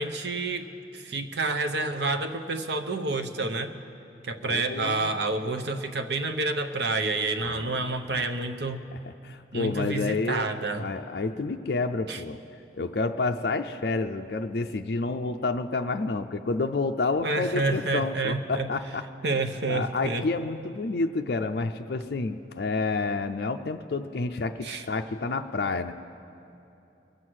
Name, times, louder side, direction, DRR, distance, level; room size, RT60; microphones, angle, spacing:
voice 1, 0.0-3.7 4.2-8.8 9.5-10.9 12.1-12.2 17.2-18.7 19.2-20.3 24.6-24.8, right 3 dB, 65° right, 8 dB, 0.8 m, -29 dB
voice 2, 4.4-5.1 7.4-8.3 9.2-10.5 10.7-12.4 12.8-19.0 19.7-25.9, left 3 dB, 60° left, 5 dB, 0.4 m, -29 dB
22.5 x 7.6 x 6.3 m, 2.8 s
head